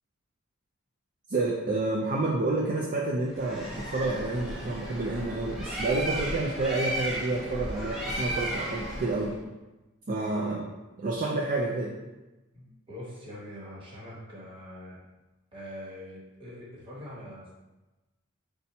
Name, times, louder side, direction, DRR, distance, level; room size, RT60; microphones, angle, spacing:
voice 1, 1.3-9.4 10.1-10.6 11.0-11.9, right 2 dB, 40° right, -3 dB, 0.4 m, -29 dB
Bird, 3.3-9.3, right 1 dB, ahead, 0.8 m, -34 dB
voice 2, 12.5-15.0 15.5-17.5, left 1 dB, 25° right, -6 dB, 1.2 m, -43 dB
4.1 x 2.2 x 4.1 m, 1.1 s
head